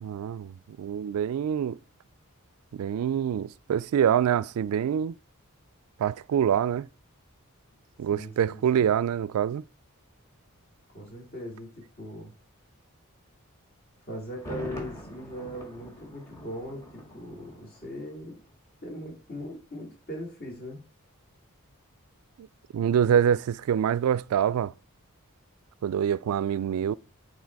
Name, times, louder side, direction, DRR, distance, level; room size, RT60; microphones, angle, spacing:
voice 1, 0.0-1.8 2.7-5.1 6.0-6.9 8.0-9.6 22.4-22.5 22.7-24.7 25.8-26.9, right 9 dB, 80° right, 0.3 m, -25 dB
voice 2, 8.1-8.9 10.9-12.3 14.0-18.4 18.8-20.8, equal, 45° left, 2.8 m, -40 dB
Thunder, 14.3-18.2 18.5-18.6, equal, 15° left, 1.5 m, -43 dB
9.6 x 4.1 x 4.6 m
head